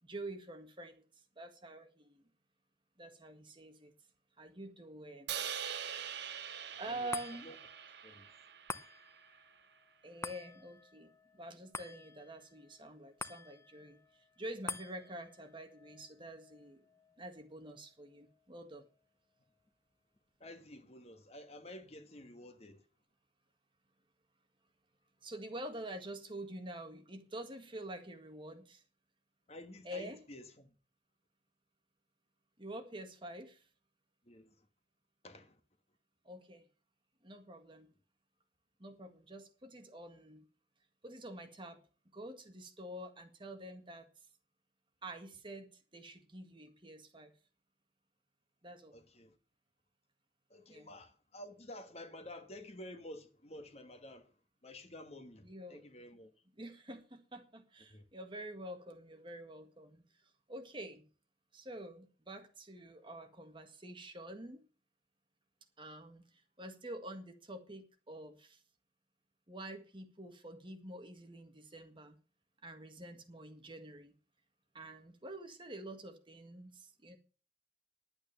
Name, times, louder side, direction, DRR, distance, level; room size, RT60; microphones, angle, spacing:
voice 1, 0.0-1.0 1.4-2.2 3.0-3.9 4.4-5.4 6.1-6.5 6.8-7.5 10.0-16.8 17.2-18.9 25.2-28.8 29.9-30.2 32.6-33.7 36.2-36.6 37.2-37.9 38.8-40.5 41.0-41.8 42.1-44.1 45.0-47.3 48.6-49.0 50.7-50.9 55.4-55.8 56.6-61.0 61.5-64.6 65.8-68.6 69.5-72.2 72.6-74.1 74.7-77.2, right 1 dB, 30° right, 1.8 m, -47 dB
Crash cymbal, 5.3-9.5, right 9 dB, 65° right, 1.1 m, -43 dB
voice 2, 6.7-7.6 8.0-8.3 20.4-22.9 29.5-30.8 34.2-34.7 35.2-35.6 48.9-49.4 50.5-56.3 57.9-58.0, left 1 dB, 35° left, 1.5 m, -51 dB
sound 1, 7.1-19.7 20.1-20.2, left 4 dB, 15° left, 0.7 m, -50 dB
11.0 x 8.9 x 7.0 m
head